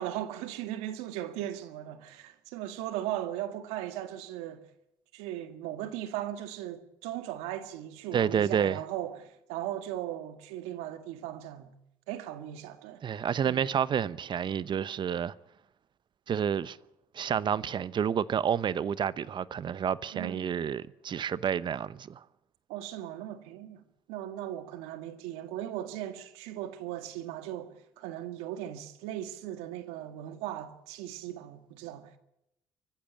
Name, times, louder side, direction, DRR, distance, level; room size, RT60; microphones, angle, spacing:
voice 1, 0.0-4.6 5.1-11.7 12.1-13.0 13.5-13.7 20.1-20.5 22.7-23.8 24.1-32.2, right 12 dB, 85° right, 1.9 m, -38 dB
voice 2, 8.1-8.8 13.0-15.3 16.3-16.8 17.1-22.2, right 8 dB, 45° right, 0.9 m, -29 dB
24.0 x 15.0 x 8.7 m
supercardioid pair, 65°, 11 cm